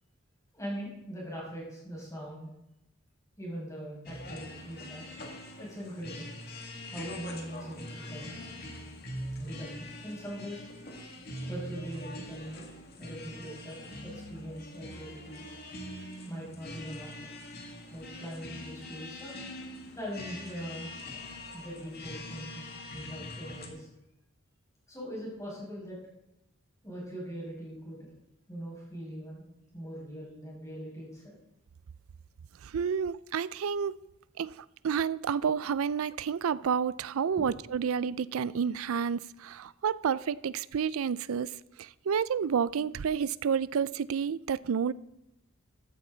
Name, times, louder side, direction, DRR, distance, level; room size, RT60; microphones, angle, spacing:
voice 1, 0.5-2.5 3.4-5.0 5.6-6.3 6.9-8.3 9.4-10.6 11.5-12.7 13.0-15.5 16.3-17.3 17.9-19.4 19.9-20.9 21.5-22.6 22.9-23.9 24.9-26.0 26.8-28.1 28.5-29.4 29.7-31.4 37.4-37.5, equal, 15° left, 6.0 m, -41 dB
sound 1, 4.0-23.7, left 1 dB, 50° left, 2.2 m, -43 dB
voice 2, 32.6-34.0 34.4-34.5 34.8-41.5 41.8-44.9, right 7 dB, 80° right, 0.4 m, -30 dB
14.5 x 13.5 x 3.9 m
head